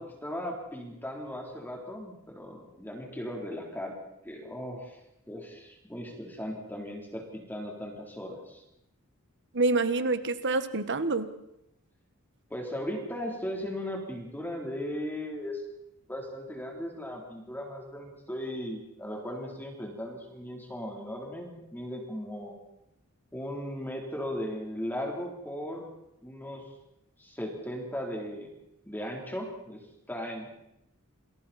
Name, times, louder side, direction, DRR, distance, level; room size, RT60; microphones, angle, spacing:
voice 1, 0.0-4.0 4.2-5.0 5.3-8.6 12.5-15.6 16.1-22.6 23.3-25.9 26.2-26.7 27.2-28.5 28.8-30.5, equal, 10° left, 0 dB, 3.5 m, -37 dB
voice 2, 9.5-11.3, right 3 dB, 55° right, 11 dB, 1.4 m, -27 dB
28.5 x 21.5 x 4.3 m, 0.81 s
head